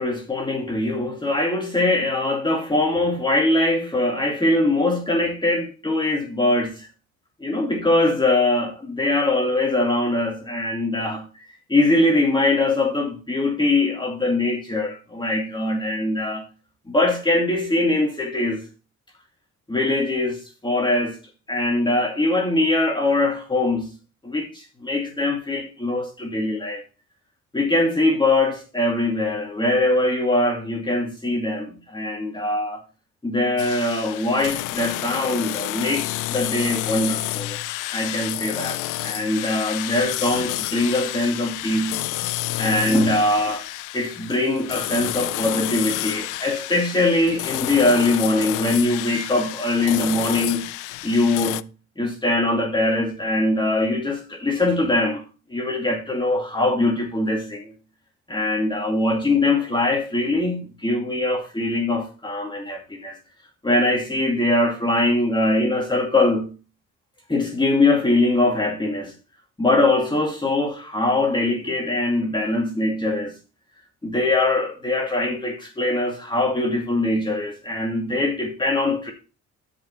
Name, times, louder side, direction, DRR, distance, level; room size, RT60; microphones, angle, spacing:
voice 1, 0.0-6.9 7.4-11.3 11.7-16.4 16.9-18.6 19.7-21.2 21.5-23.9 24.2-26.8 27.5-32.8 33.2-37.6 37.9-42.3 42.6-43.6 43.9-50.6 51.0-51.6 52.0-55.2 55.5-57.7 58.3-63.2 63.6-66.5 67.3-69.1 69.6-73.3 74.0-79.1, left 2 dB, 15° left, 2.4 m, -22 dB
sound 1, 33.6-51.6, left 17 dB, 90° left, 0.5 m, -29 dB
12.5 x 5.4 x 4.3 m
cardioid pair, 90°, 30 cm